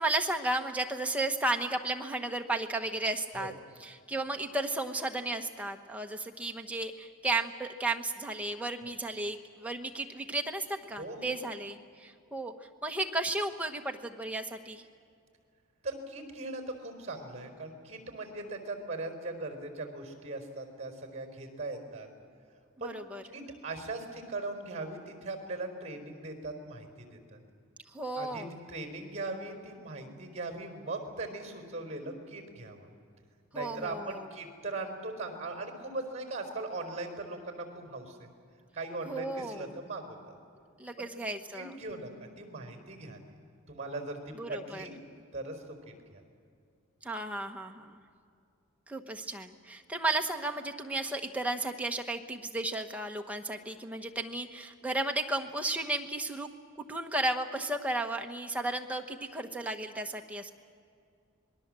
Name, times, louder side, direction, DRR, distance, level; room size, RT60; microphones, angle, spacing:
voice 1, 0.0-3.5 3.8-12.5 12.8-14.8 22.8-23.2 27.9-28.5 33.5-34.2 39.1-39.6 40.8-41.7 44.4-44.9 47.0-48.0 48.9-56.5 56.9-60.5, right 2 dB, 5° right, 3 dB, 1.1 m, -34 dB
voice 2, 11.0-11.5 15.8-22.1 22.8-22.9 23.2-27.4 28.2-32.9 33.5-38.3 38.7-40.3 41.0-41.1 41.5-43.4 43.7-44.9 45.3-46.2, right 2 dB, 30° right, 6 dB, 4.3 m, -40 dB
26.5 x 21.0 x 7.6 m, 2.3 s
head